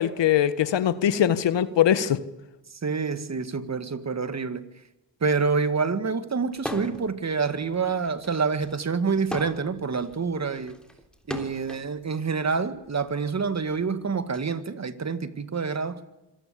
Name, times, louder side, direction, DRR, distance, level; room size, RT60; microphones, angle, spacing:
voice 1, 0.0-2.2, left 10 dB, 65° left, 1.5 m, -22 dB
voice 2, 2.8-4.6 5.2-10.8 11.3-16.0, right 5 dB, 35° right, 2.0 m, -27 dB
sound 1, 6.6-7.1 7.5-11.9 12.8-14.4, left 1 dB, ahead, 3.5 m, -38 dB
25.5 x 17.0 x 8.6 m
cardioid pair, 70°, 46 cm